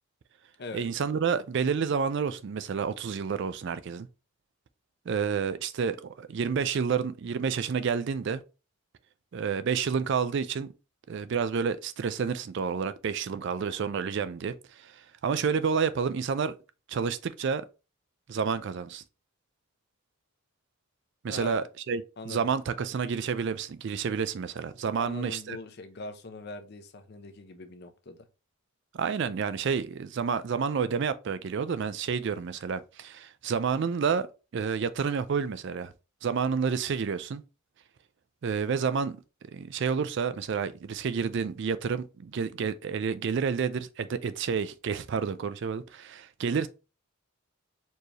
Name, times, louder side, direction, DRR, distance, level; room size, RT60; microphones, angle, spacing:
voice 1, 0.7-4.1 5.1-8.4 9.3-10.7 11.1-16.5 16.9-17.6 18.3-19.0 21.2-25.6 28.9-34.3 34.5-35.9 36.2-37.4 38.4-39.2 39.5-46.7, right 6 dB, 55° right, 0.3 m, -29 dB
voice 2, 21.3-21.7 22.2-22.5 25.0-28.2, left 2 dB, 45° left, 0.6 m, -41 dB
4.4 x 3.2 x 2.8 m
head